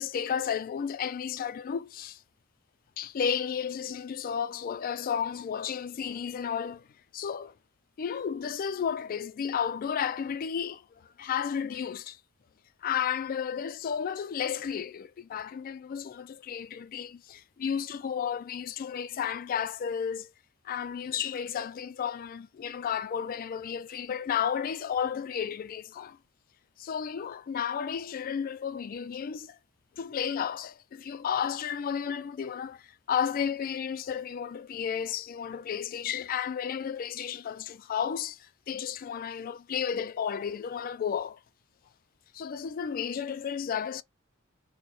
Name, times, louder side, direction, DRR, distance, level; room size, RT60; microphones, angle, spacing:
voice 1, 0.0-2.2 3.0-6.9 7.1-7.5 8.0-12.2 12.8-20.3 20.6-26.2 26.8-29.6 30.0-41.4 42.3-44.0, left 7 dB, 45° left, 0.3 m, -33 dB
4.3 x 2.1 x 3.1 m
head